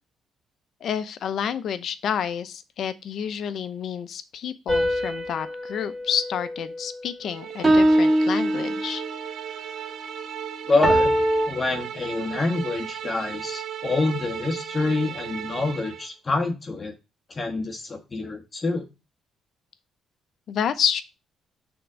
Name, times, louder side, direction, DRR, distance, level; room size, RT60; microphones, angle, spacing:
voice 1, 0.8-9.0 20.5-21.0, left 8 dB, 65° left, 12 dB, 0.7 m, -29 dB
sound 1, 4.7-7.1 7.6-9.2 10.8-11.5, equal, 15° right, 2.8 m, -22 dB
sound 2, 7.2-16.1, right 9 dB, 70° right, 0.6 m, -36 dB
voice 2, 10.7-11.1 11.5-16.9 17.3-18.8, left 3 dB, 30° left, 2 dB, 1.4 m, -26 dB
6.0 x 3.7 x 6.1 m, 0.27 s
cardioid pair, 90°, 0 cm